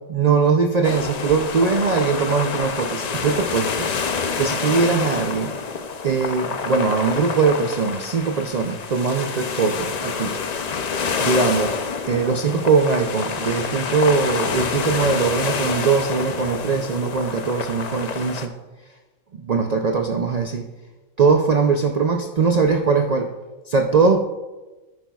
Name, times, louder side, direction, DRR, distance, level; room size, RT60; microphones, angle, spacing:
voice 1, 0.1-5.5 6.0-10.4 11.2-11.8 12.1-18.5 19.3-20.7 21.2-23.3 23.7-24.2, right 5 dB, 75° right, 4 dB, 0.3 m, -21 dB
sound 1, 0.8-18.5, left 5 dB, 60° left, 0.4 m, -27 dB
12.0 x 10.0 x 2.3 m, 1.2 s
omnidirectional pair, 1.5 m